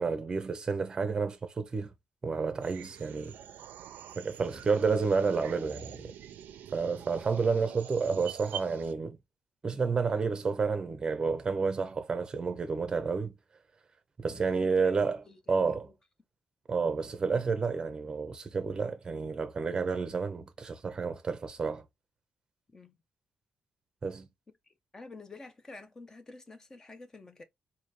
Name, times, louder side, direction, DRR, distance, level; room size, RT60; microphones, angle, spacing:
voice 1, 0.0-1.9 2.2-3.4 4.2-6.1 6.7-9.2 9.6-13.3 14.2-15.2 15.5-15.9 16.7-21.8 24.0-24.3, right 5 dB, 25° right, 0.7 m, -30 dB
sound 1, 2.6-8.9, right 10 dB, 85° right, 0.5 m, -45 dB
voice 2, 15.3-15.7 22.7-23.0 24.7-27.4, left 3 dB, 20° left, 0.6 m, -49 dB
4.0 x 2.7 x 3.2 m
wide cardioid pair, 170°, 3 cm